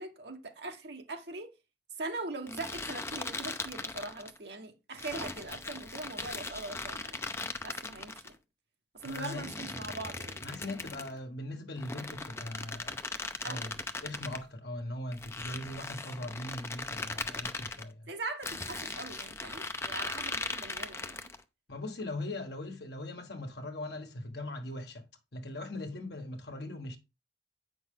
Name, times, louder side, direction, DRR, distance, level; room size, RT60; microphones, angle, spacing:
voice 1, 0.0-1.5 2.0-7.2 7.6-8.3 8.9-10.4 13.4-13.7 18.1-21.3, right 3 dB, 65° right, 1.3 m, -41 dB
sound 1, 2.5-4.4 5.0-8.3 9.0-11.1 11.8-14.4 15.1-17.8 18.4-21.4, left 3 dB, 15° left, 0.5 m, -39 dB
voice 2, 9.0-9.5 10.4-13.0 13.4-13.7 14.0-18.1 21.7-25.1 25.3-27.0, left 1 dB, 60° left, 1.4 m, -40 dB
8.0 x 5.9 x 3.7 m
head